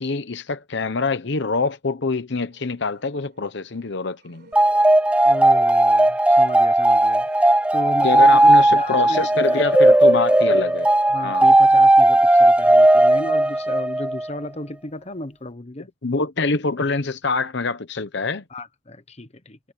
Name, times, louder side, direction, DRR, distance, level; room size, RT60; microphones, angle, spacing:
voice 1, 0.0-4.5 8.0-10.9 11.2-11.5 16.0-18.4, left 3 dB, 60° left, 0.9 m, -25 dB
sound 1, 2.5-11.6, right 2 dB, 55° right, 5.1 m, -52 dB
sound 2, 4.5-14.3, right 1 dB, 5° right, 0.3 m, -16 dB
voice 2, 5.2-9.7 11.1-15.9 18.5-19.6, left 1 dB, 35° left, 1.2 m, -34 dB
head